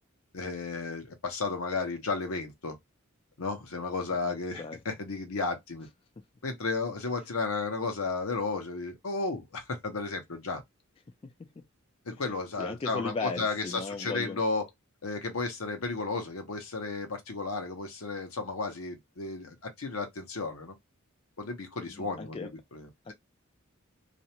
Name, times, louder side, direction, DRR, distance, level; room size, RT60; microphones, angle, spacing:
voice 1, 0.3-2.8 3.4-5.9 6.4-10.6 12.1-14.6 15.0-20.7 21.4-23.1, left 3 dB, 80° left, 0.8 m, -33 dB
voice 2, 4.2-4.8 11.2-11.6 12.1-12.2 12.6-14.4 21.9-22.5 23.0-23.1, left 4 dB, 25° left, 0.3 m, -37 dB
2.5 x 2.1 x 2.8 m
head